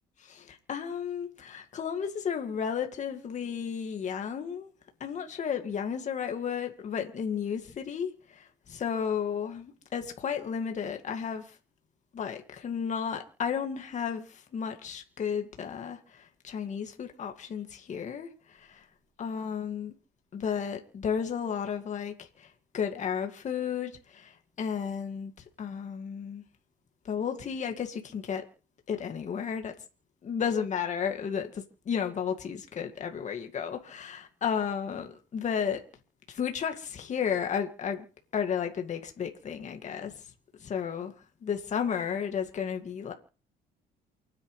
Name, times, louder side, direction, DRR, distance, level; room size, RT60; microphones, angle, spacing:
voice 1, 0.2-4.7 5.0-8.1 8.7-11.4 12.1-18.3 18.7-18.8 19.2-19.9 20.3-22.1 22.4-22.5 22.7-25.3 25.6-26.4 27.1-28.4 28.9-29.7 30.2-35.8 36.3-38.1 38.3-40.1 40.6-41.1 41.4-43.1, left 7 dB, 45° left, 2.2 m, -33 dB
29.0 x 9.9 x 3.3 m
cardioid pair, 110°, 17 cm